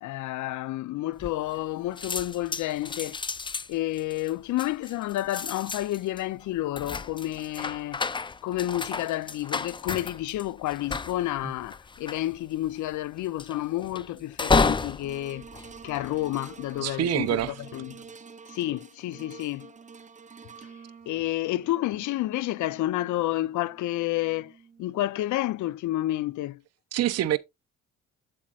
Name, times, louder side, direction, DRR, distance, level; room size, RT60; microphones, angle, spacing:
voice 1, 0.0-3.2 3.7-8.1 8.4-15.4 15.8-18.0 18.5-19.7 20.6-20.7 21.1-26.6, left 15 dB, 75° left, 0.5 m, -30 dB
sound 1, 1.2-1.7 2.0-16.5 17.1-17.5, left 4 dB, 15° left, 0.4 m, -32 dB
sound 2, 15.0-25.4 26.0-26.1, right 5 dB, 25° right, 0.7 m, -49 dB
voice 2, 16.8-17.5 26.9-27.4, right 12 dB, 55° right, 0.6 m, -25 dB
8.6 x 7.3 x 2.4 m
cardioid pair, 90°, 30 cm